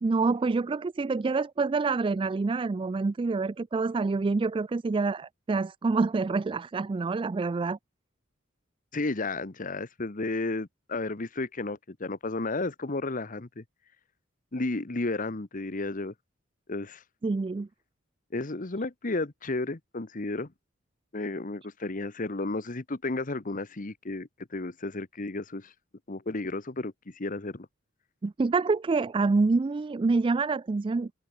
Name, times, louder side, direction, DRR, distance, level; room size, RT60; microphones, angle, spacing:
voice 1, 0.0-7.8 17.2-17.7 28.2-31.1, right 3 dB, 25° right, 0.3 m, -27 dB
voice 2, 8.9-13.6 14.5-16.1 16.7-17.0 18.3-20.5 21.1-25.7 26.1-27.7, left 2 dB, 40° left, 1.1 m, -33 dB
head